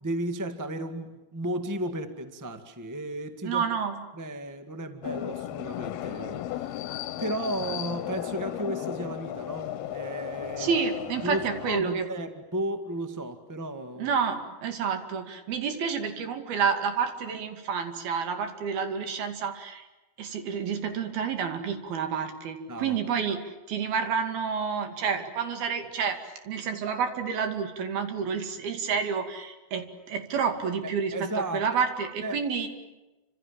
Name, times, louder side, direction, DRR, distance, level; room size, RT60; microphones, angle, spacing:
voice 1, 0.0-3.6 4.1-6.9 7.2-10.8 11.2-14.2 22.7-23.0 31.1-31.6 32.2-32.4, right 1 dB, 15° right, 7 dB, 0.7 m, -34 dB
voice 2, 3.4-4.0 10.6-12.1 14.0-19.9 20.2-23.4 23.7-26.2 26.5-32.7, right 6 dB, 75° right, 6 dB, 4.3 m, -29 dB
sound 1, 5.0-11.8, left 13 dB, 80° left, 3.0 m, -35 dB
29.5 x 26.5 x 7.6 m, 1.1 s
omnidirectional pair, 4.4 m